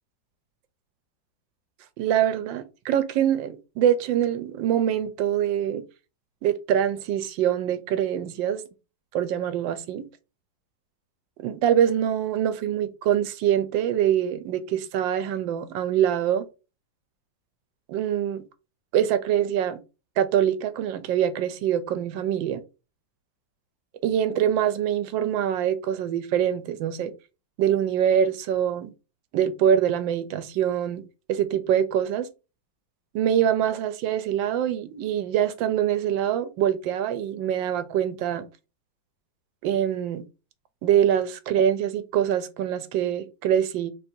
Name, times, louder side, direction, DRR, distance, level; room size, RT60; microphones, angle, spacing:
voice 1, 2.0-5.8 6.4-8.6 9.1-10.1 11.4-16.5 17.9-18.4 18.9-19.8 20.2-22.6 24.0-27.1 27.6-28.9 29.3-31.0 31.3-32.3 33.1-38.4 39.6-40.2 40.8-43.9, right 10 dB, 85° right, 1.3 m, -24 dB
3.9 x 2.7 x 4.3 m
omnidirectional pair, 2.0 m